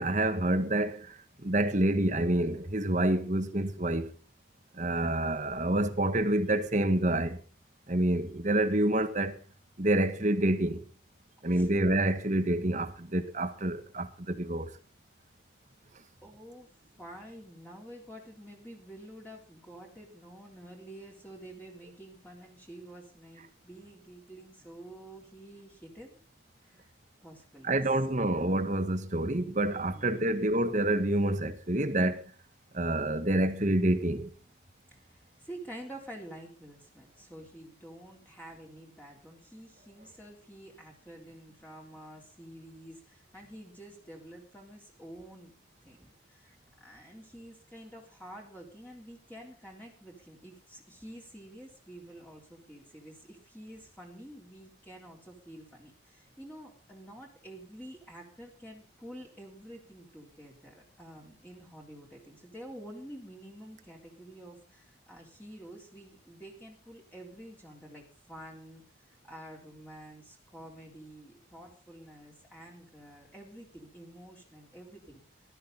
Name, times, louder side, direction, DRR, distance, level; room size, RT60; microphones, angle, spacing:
voice 1, 0.0-4.1 4.7-7.4 7.9-9.4 9.8-10.8 11.4-14.7 27.6-32.3 32.7-34.3, right 1 dB, 40° right, 1.7 m, -28 dB
voice 2, 16.2-16.7 17.0-26.2 26.6-26.9 27.2-27.8 29.9-30.3 34.9-45.5 45.8-46.6 46.8-75.2, right 1 dB, 10° left, 3.8 m, -49 dB
20.0 x 13.0 x 4.1 m
head